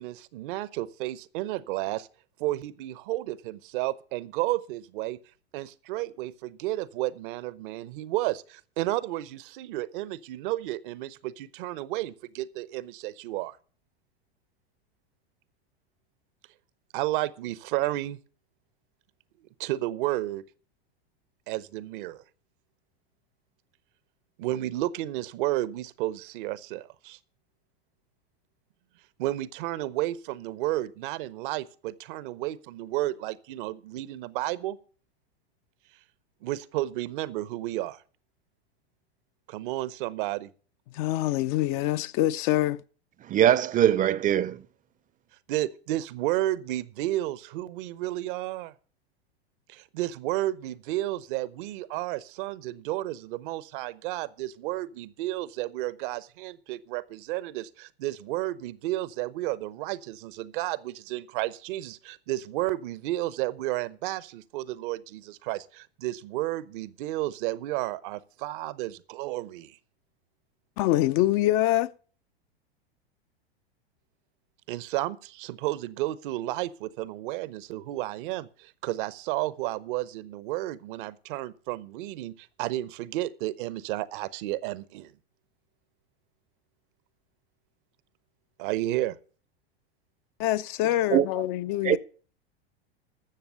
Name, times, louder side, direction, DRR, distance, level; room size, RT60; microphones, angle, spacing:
voice 1, 0.0-2.1 2.4-5.2 5.5-13.6 16.9-18.2 19.6-20.4 21.5-22.2 24.4-27.2 29.2-34.8 36.4-38.0 39.5-40.5 45.5-48.7 49.7-69.8 74.7-85.1 88.6-89.2, right 16 dB, 55° right, 0.8 m, -32 dB
voice 2, 40.9-42.8 70.8-71.9 90.4-92.0, left 15 dB, 50° left, 0.7 m, -25 dB
voice 3, 43.3-44.6 91.1-91.3 91.9-92.0, right 11 dB, 25° right, 0.6 m, -21 dB
13.0 x 7.2 x 6.8 m
hypercardioid pair, 100°, 32 cm